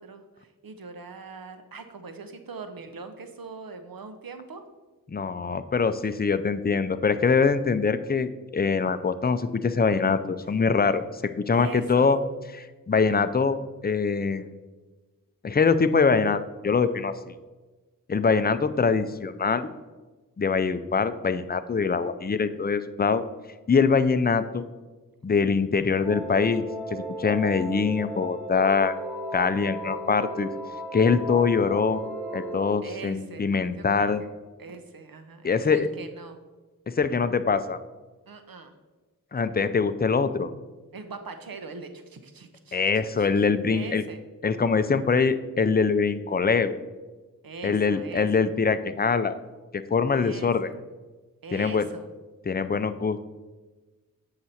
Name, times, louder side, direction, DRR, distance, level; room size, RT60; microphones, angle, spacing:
voice 1, 0.0-4.6 11.5-12.2 32.8-34.3 34.6-36.4 38.3-38.7 40.9-42.8 43.2-44.2 47.4-48.5 50.1-50.8 51.4-52.1, right 4 dB, 80° right, 7 dB, 0.8 m, -41 dB
voice 2, 5.1-11.0 11.4-12.2 12.6-13.6 13.8-14.5 15.4-17.3 18.1-19.7 20.4-23.2 23.7-24.6 25.2-28.9 29.3-30.5 30.9-32.0 32.3-34.2 35.4-35.9 37.0-37.8 39.3-40.5 42.7-44.0 44.4-46.7 47.6-49.4 49.7-50.7 51.5-51.9 52.5-53.2, left 5 dB, 30° left, 11 dB, 0.5 m, -23 dB
sound 1, 26.0-32.7, right 1 dB, 10° right, 2.4 m, -35 dB
7.8 x 5.8 x 4.2 m, 1.2 s
wide cardioid pair, 55°, 34 cm